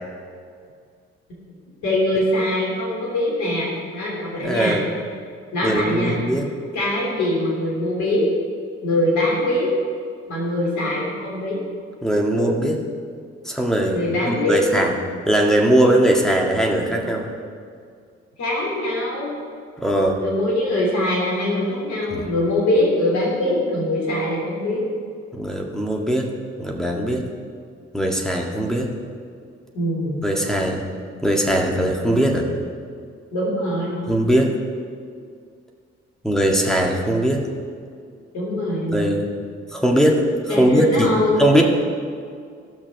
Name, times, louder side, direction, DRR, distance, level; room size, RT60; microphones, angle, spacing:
voice 1, 1.8-4.8 5.5-6.2 6.7-8.3 8.8-9.7 10.3-11.6 13.9-14.7 18.4-19.3 20.2-24.9 29.7-30.2 33.3-34.1 38.3-39.0 40.5-41.3, left 1 dB, 60° left, -4 dB, 3.3 m, -22 dB
voice 2, 4.4-4.8 5.6-6.5 12.0-12.8 13.5-14.0 14.3-15.0 15.3-17.3 19.8-20.2 22.1-22.3 25.3-26.3 26.6-27.2 27.9-28.9 30.2-30.8 31.2-32.5 34.1-34.5 36.2-37.4 38.9-39.3 39.7-41.1 41.4-41.6, right 1 dB, ahead, 0 dB, 1.8 m, -20 dB
16.0 x 6.1 x 5.4 m, 2.2 s
figure-of-eight pair, 45°, 32 cm